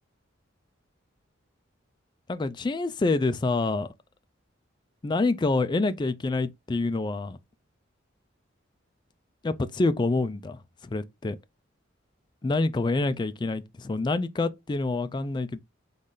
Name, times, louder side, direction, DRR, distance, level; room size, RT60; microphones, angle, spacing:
voice 1, 2.3-3.9 5.0-7.4 9.4-11.4 12.4-15.6, left 3 dB, 20° left, 0.3 m, -27 dB
4.0 x 3.1 x 3.7 m
head